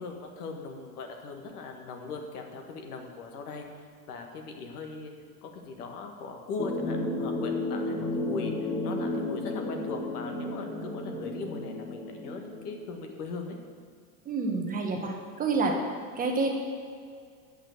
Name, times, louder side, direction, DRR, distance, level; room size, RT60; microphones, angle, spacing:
voice 1, 0.0-3.6 4.1-5.1 5.4-13.6, left 4 dB, 85° left, 3 dB, 1.7 m, -39 dB
sound 1, 6.6-12.8, left 2 dB, 5° left, 0.6 m, -33 dB
voice 2, 14.2-15.8 16.1-16.5, right 3 dB, 20° right, 1 dB, 1.0 m, -28 dB
8.0 x 6.1 x 7.8 m, 2.1 s
supercardioid pair, 145°, 45 cm